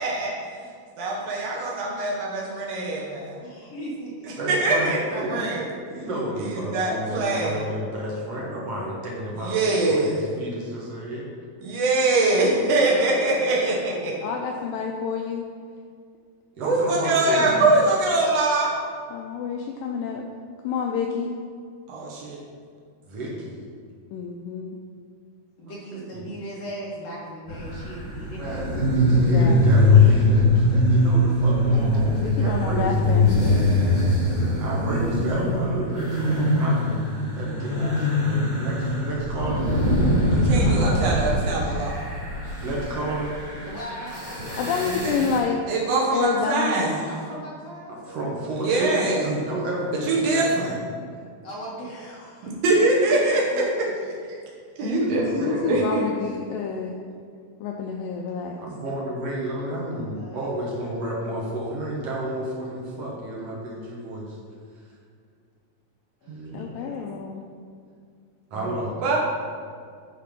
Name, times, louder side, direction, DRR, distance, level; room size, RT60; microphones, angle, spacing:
voice 1, 1.0-3.4 4.5-6.0 6.4-7.6 9.4-10.2 11.6-13.7 16.6-18.7 21.9-22.4 40.3-42.0 45.0-45.1 45.7-47.0 48.6-49.3 50.0-50.7 52.6-53.8 54.8-56.1 66.3-66.7 69.0-69.2, right 2 dB, 80° right, -3 dB, 1.4 m, -23 dB
voice 2, 3.4-4.6 12.9-14.3 25.6-28.8 29.9-30.3 33.4-34.1 43.6-44.6 47.1-49.1 51.4-52.5 52.8-54.2 56.6-56.8 60.1-60.7 66.2-67.3, right 1 dB, 65° left, -5 dB, 1.7 m, -39 dB
voice 3, 4.4-5.5 5.9-11.3 16.6-17.6 23.1-23.6 25.9-26.2 28.4-33.3 34.6-40.1 42.6-43.3 47.9-50.7 54.9-55.8 58.6-64.4 68.5-69.0, right 1 dB, 60° right, -4 dB, 1.6 m, -31 dB
voice 4, 14.2-15.5 19.1-20.3 20.6-21.3 24.1-24.8 29.1-30.0 32.2-33.3 40.6-41.1 44.6-45.6 46.1-47.0 54.8-57.0 57.6-58.5 66.5-67.4, left 6 dB, 85° left, 1 dB, 2.0 m, -29 dB
sound 1, 27.5-45.4, left 1 dB, 25° left, 1.0 m, -22 dB
11.0 x 4.2 x 5.2 m, 2.1 s
omnidirectional pair, 4.6 m